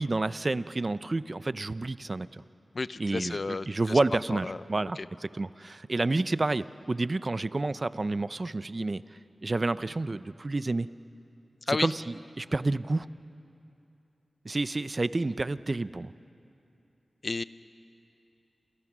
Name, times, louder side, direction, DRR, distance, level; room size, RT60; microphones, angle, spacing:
voice 1, 0.0-2.3 3.0-3.4 3.7-5.0 5.4-9.0 9.4-10.9 11.7-11.9 12.4-13.1 14.4-16.1, right 2 dB, 40° right, 15 dB, 0.6 m, -29 dB
voice 2, 2.7-4.6 5.0-5.1 11.6-11.9 17.2-17.4, left 3 dB, 50° left, 15 dB, 0.6 m, -32 dB
29.5 x 27.5 x 6.2 m, 2.8 s
wide cardioid pair, 70°, 0 cm